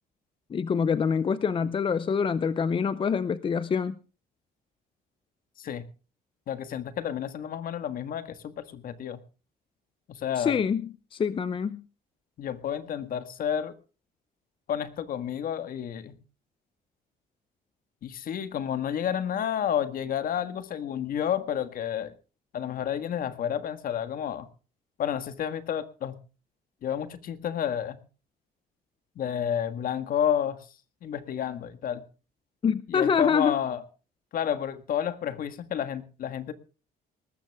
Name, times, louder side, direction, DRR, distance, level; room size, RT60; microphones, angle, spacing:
voice 1, 0.5-4.0 10.4-11.8 32.6-33.5, left 6 dB, 30° left, 0.6 m, -26 dB
voice 2, 6.5-9.2 10.1-10.6 12.4-13.7 14.7-16.2 18.0-22.1 22.5-24.5 25.0-26.1 26.8-28.0 29.1-30.6 31.0-32.0 32.9-33.8 34.3-36.5, left 9 dB, 55° left, 1.7 m, -30 dB
19.5 x 13.5 x 3.6 m
cardioid pair, 110°, 17 cm